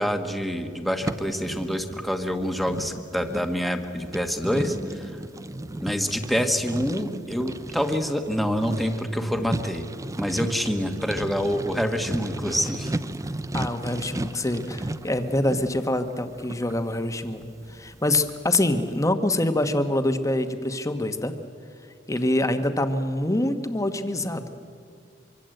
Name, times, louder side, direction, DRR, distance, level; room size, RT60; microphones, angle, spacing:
voice 1, 0.0-5.1 5.8-9.9 10.2-12.9, equal, ahead, 5 dB, 1.4 m, -26 dB
sound 1, 1.0-18.7, right 1 dB, 15° right, 0.5 m, -35 dB
voice 2, 13.5-21.3 22.1-24.5, left 1 dB, 15° left, 8 dB, 1.3 m, -25 dB
24.5 x 24.5 x 7.9 m, 2.4 s
head